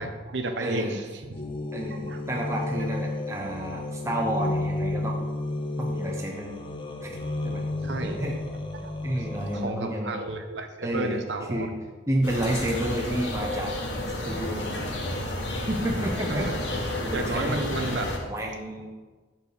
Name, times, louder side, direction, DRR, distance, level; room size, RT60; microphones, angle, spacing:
voice 1, 0.0-1.4 1.9-2.2 7.8-8.3 9.6-11.7 16.3-16.5 17.1-18.1, right 2 dB, 75° right, 6 dB, 0.9 m, -32 dB
voice 2, 0.6-1.0 1.7-5.3 5.8-6.6 7.0-7.2 7.4-7.6 8.0-8.4 9.0-10.2 10.8-11.2 11.5-11.7 12.1-13.7 14.1-14.7 15.7-16.5 17.0-17.6 18.2-18.9, right 1 dB, 15° right, 0 dB, 0.7 m, -30 dB
sound 1, 1.3-9.7, left 2 dB, 30° left, 0.8 m, -32 dB
sound 2, 12.2-18.2, left 1 dB, 80° left, 1.7 m, -31 dB
8.4 x 4.6 x 6.5 m, 1.3 s
head